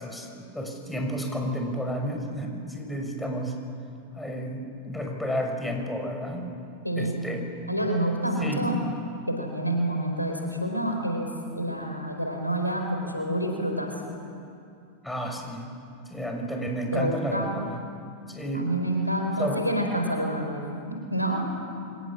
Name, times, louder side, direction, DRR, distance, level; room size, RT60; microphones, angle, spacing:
voice 1, 0.0-3.5 4.1-6.5 7.0-7.4 8.4-8.7 15.0-15.7 16.1-17.8 18.3-18.7 19.4-19.6, equal, 5° left, 2 dB, 6.4 m, -31 dB
voice 2, 7.7-8.8 9.3-11.3 11.6-13.9 16.9-17.5 18.5-21.5, right 1 dB, 90° left, 3 dB, 4.4 m, -28 dB
29.5 x 25.0 x 7.5 m, 2.5 s
figure-of-eight pair, 90°, 0 cm